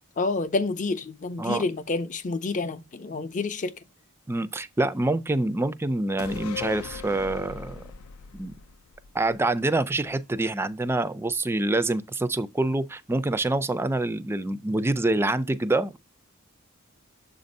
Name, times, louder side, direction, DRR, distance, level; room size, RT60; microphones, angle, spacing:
voice 1, 0.2-3.7, left 3 dB, 35° left, 0.5 m, -28 dB
voice 2, 4.3-7.8 8.3-8.5 9.1-16.0, right 2 dB, 10° right, 0.3 m, -26 dB
sound 1, 6.2-9.8 10.1-10.2, left 7 dB, 85° left, 0.4 m, -39 dB
7.1 x 2.6 x 5.1 m
head